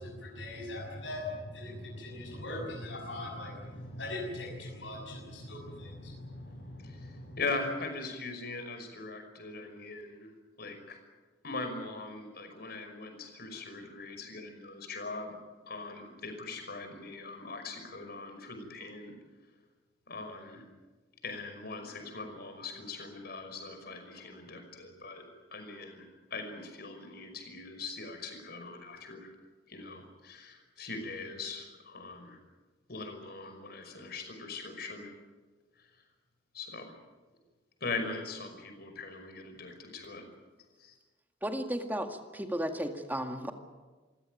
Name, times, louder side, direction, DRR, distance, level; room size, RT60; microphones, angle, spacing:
voice 1, 0.0-7.4, left 1 dB, 85° left, -1 dB, 6.5 m, -41 dB
voice 2, 7.4-10.3 10.6-11.0 11.4-15.4 15.7-19.1 20.1-20.6 21.2-25.2 25.5-26.1 26.3-29.3 29.7-32.4 32.9-35.1 36.5-36.9 37.8-40.2 40.8-40.9, left 3 dB, 60° left, 5 dB, 5.6 m, -41 dB
voice 3, 41.4-43.5, equal, 10° right, 5 dB, 2.0 m, -34 dB
27.5 x 16.0 x 9.3 m, 1.3 s
head